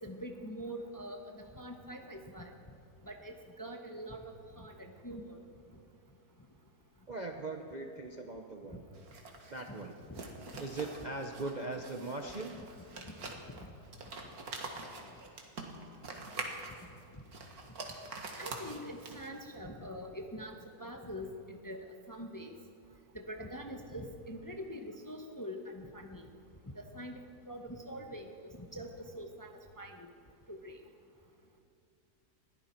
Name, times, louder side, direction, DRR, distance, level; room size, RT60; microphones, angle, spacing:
voice 1, 0.0-1.2 1.6-2.5 3.1-4.2 4.6-5.4 10.1-10.2 18.4-22.5 23.1-26.2 26.9-27.2 27.5-28.3 28.6-28.9 29.1-29.5 29.8-30.1 30.5-30.8, equal, 15° left, 3 dB, 0.8 m, -44 dB
voice 2, 7.1-8.8 9.5-9.9 10.6-12.6 14.2-14.3, right 2 dB, 35° right, 3 dB, 0.7 m, -40 dB
sound 1, 8.9-19.5, right 3 dB, 65° right, 2.1 m, -45 dB
21.0 x 15.5 x 4.5 m, 2.5 s
omnidirectional pair, 1.7 m